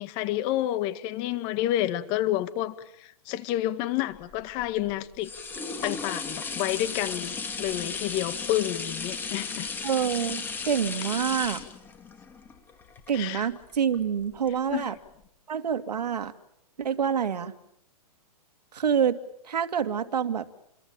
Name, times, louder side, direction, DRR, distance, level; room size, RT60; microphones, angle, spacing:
voice 1, 0.0-5.3 5.8-9.7 13.1-13.5 14.7-14.9, left 13 dB, 25° left, 12 dB, 1.8 m, -29 dB
sound 1, 4.3-14.0 14.5-14.6, left 5 dB, 10° left, 2.5 m, -35 dB
voice 2, 9.8-11.6 13.1-14.9 15.5-16.3 16.8-17.5 18.7-19.2 19.4-20.5, right 8 dB, 90° right, 9 dB, 2.4 m, -27 dB
29.5 x 22.5 x 8.8 m, 0.75 s
hypercardioid pair, 160°, 20 cm